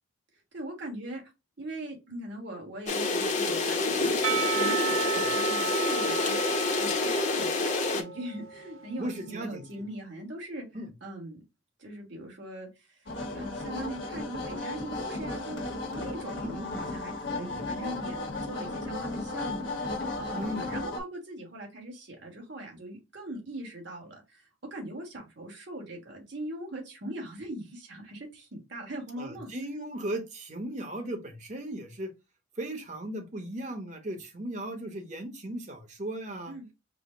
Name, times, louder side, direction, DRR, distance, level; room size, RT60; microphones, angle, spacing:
voice 1, 0.5-1.2 1.6-11.4 11.8-13.1 13.3-29.5 36.5-36.7, right 1 dB, 60° right, 1.6 m, -41 dB
sound 1, 2.9-8.0, left 3 dB, 35° left, 0.7 m, -27 dB
Percussion, 4.2-9.1, right 7 dB, 85° right, 0.6 m, -33 dB
voice 2, 9.0-9.7 10.7-10.9 16.4-16.9 17.4-17.6 20.3-20.7 29.2-32.1 32.6-36.5, right 1 dB, 35° right, 1.0 m, -36 dB
sound 2, 13.1-21.0, left 2 dB, 65° left, 1.1 m, -35 dB
4.9 x 2.1 x 3.7 m
head